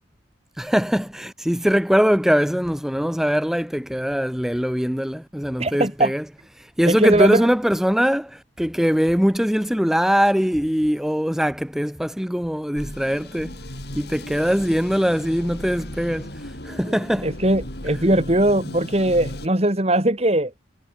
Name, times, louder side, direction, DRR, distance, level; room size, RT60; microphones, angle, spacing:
voice 1, 0.6-6.2 6.8-13.6 13.9-16.3 16.6-17.3, equal, ahead, 0.7 m, -21 dB
voice 2, 5.6-6.1 6.8-7.5 17.2-20.5, right 1 dB, 35° right, 2.4 m, -20 dB
sound 1, 12.8-19.5, left 1 dB, 55° left, 6.9 m, -36 dB
head